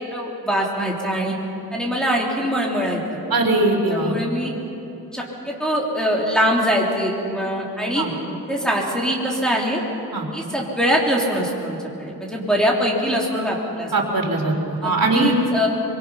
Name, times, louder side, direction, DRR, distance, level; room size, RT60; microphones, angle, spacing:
voice 1, 0.1-1.3 1.7-3.0 3.9-4.5 5.1-8.0 8.5-9.8 10.3-13.9 14.8-15.7, equal, ahead, -3 dB, 3.4 m, -23 dB
voice 2, 3.3-4.1 8.0-8.1 10.1-10.3 13.9-15.3, right 2 dB, 65° right, 1 dB, 3.6 m, -21 dB
24.5 x 23.5 x 5.8 m, 2.8 s
wide cardioid pair, 110°, 37 cm